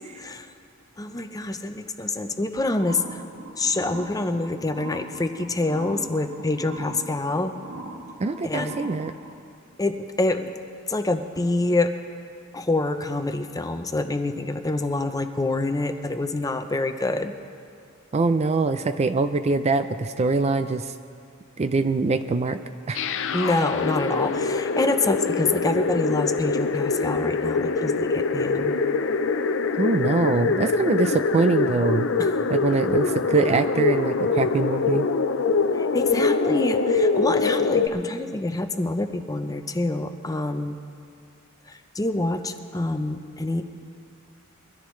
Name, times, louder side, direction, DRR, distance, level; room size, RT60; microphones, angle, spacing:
voice 1, 1.0-3.2 3.6-7.5 8.4-8.8 9.8-10.5 10.9-11.9 12.5-17.3 23.3-28.8 32.2-32.3 32.9-33.2 35.8-40.8 41.7-43.6, left 2 dB, 15° left, 7 dB, 0.6 m, -26 dB
sound 1, 2.7-9.3, right 1 dB, 65° right, 1.7 m, -40 dB
voice 2, 8.2-9.1 18.1-20.9 21.6-22.6 22.9-23.0 29.7-32.1 32.5-35.1, right 3 dB, 30° right, 9 dB, 0.4 m, -23 dB
sound 2, 22.9-37.9, left 4 dB, 60° left, 0.6 m, -24 dB
23.0 x 13.5 x 3.2 m, 2.4 s
head